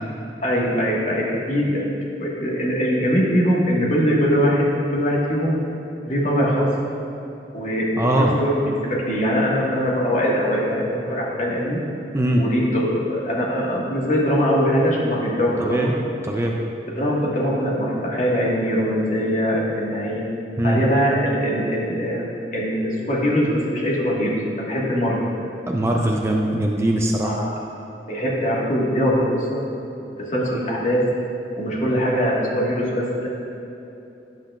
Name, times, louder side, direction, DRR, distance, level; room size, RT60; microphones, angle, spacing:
voice 1, 0.4-1.8 2.2-5.6 6.0-6.7 7.5-8.5 8.8-11.8 12.4-15.9 16.9-20.3 20.6-22.2 22.5-26.0 27.2-27.5 28.1-29.6 30.2-31.1 31.6-33.3, equal, 45° left, -5 dB, 1.5 m, -22 dB
voice 2, 8.0-8.4 12.1-12.4 15.6-15.9 16.2-16.5 20.6-20.8 25.7-27.5, right 1 dB, 15° right, 0 dB, 0.4 m, -21 dB
10.5 x 7.6 x 2.4 m, 2.9 s
head